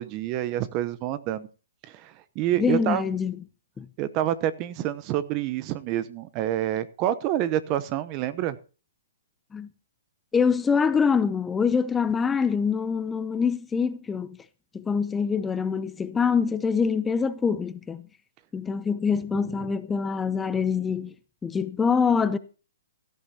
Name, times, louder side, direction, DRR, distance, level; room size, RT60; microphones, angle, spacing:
voice 1, 0.0-1.5 1.9-3.0 4.0-8.6 19.3-19.7, right 12 dB, 30° right, 0.8 m, -28 dB
voice 2, 2.6-3.4 3.8-3.9 9.5-9.7 10.3-14.4 14.7-18.0 18.5-21.1 21.4-22.4, left 6 dB, 10° left, 0.6 m, -25 dB
16.5 x 13.0 x 2.9 m
hypercardioid pair, 135°, 0 cm